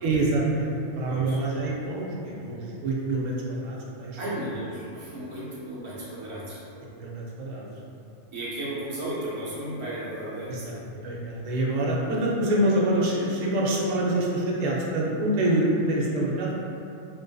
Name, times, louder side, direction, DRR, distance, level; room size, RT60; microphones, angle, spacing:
voice 1, 0.0-4.2 6.8-7.6 10.5-10.7 11.0-16.6, right 1 dB, 90° right, -4 dB, 1.0 m, -26 dB
voice 2, 1.0-1.4 4.2-6.6 8.3-10.9, right 1 dB, 30° right, -9 dB, 0.7 m, -34 dB
4.2 x 2.5 x 2.2 m, 2.6 s
omnidirectional pair, 1.3 m